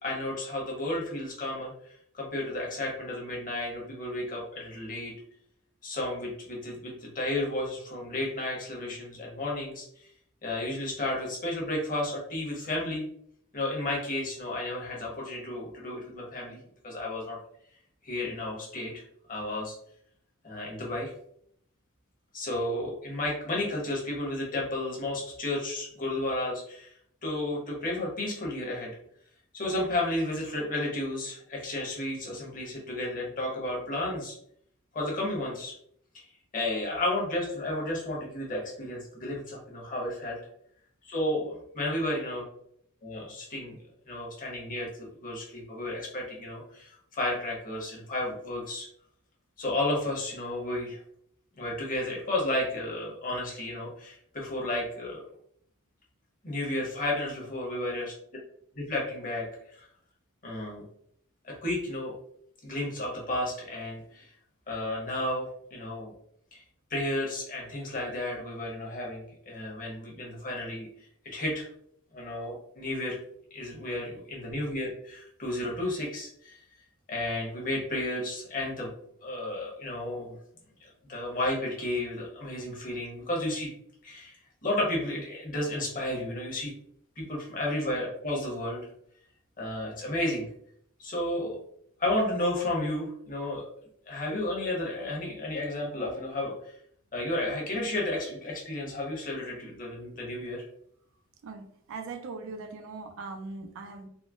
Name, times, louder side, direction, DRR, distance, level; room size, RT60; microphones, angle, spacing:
voice 1, 0.0-5.1 5.8-10.1 10.4-13.1 13.5-16.6 16.8-17.4 18.0-19.0 19.3-19.7 20.4-21.1 22.3-26.9 27.2-28.9 29.5-34.3 34.9-35.7 36.1-36.2 36.5-40.4 41.0-42.4 43.0-43.8 44.1-48.9 49.6-51.0 51.6-55.2 56.4-58.1 58.8-59.9 60.4-60.8 61.4-62.1 62.6-64.3 64.7-66.1 66.5-66.6 66.9-70.9 71.2-71.7 72.1-73.2 73.5-76.6 77.1-78.9 79.2-80.3 80.8-83.7 84.0-86.7 87.2-88.9 89.6-90.4 91.0-91.6 92.0-93.6 94.1-96.7 97.1-100.6, left 1 dB, 40° left, -2 dB, 1.0 m, -32 dB
voice 2, 101.4-104.1, right 4 dB, 65° right, 6 dB, 0.4 m, -40 dB
3.7 x 2.1 x 2.4 m, 0.67 s
head